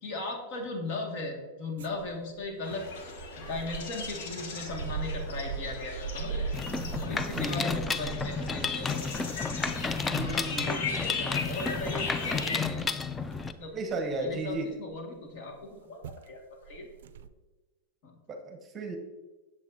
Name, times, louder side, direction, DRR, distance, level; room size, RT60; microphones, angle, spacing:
voice 1, 0.0-2.9 3.4-6.5 6.9-9.1 10.2-12.8 13.6-13.7 14.2-16.9 18.0-18.2, left 2 dB, 55° left, 1 dB, 1.9 m, -38 dB
sound 1, 1.8-14.9 15.6-15.8 16.0-16.3 16.6-17.3, right 6 dB, 85° right, 0.4 m, -41 dB
sound 2, 2.6-12.6, left 4 dB, 70° left, 1.4 m, -38 dB
Mechanisms, 6.5-13.5, left 5 dB, 15° left, 0.4 m, -32 dB
voice 2, 7.3-7.8 10.0-10.7 13.7-14.7 18.3-19.0, right 2 dB, 25° right, 4 dB, 0.9 m, -34 dB
8.2 x 7.3 x 2.7 m, 1.2 s
supercardioid pair, 145°, 0 cm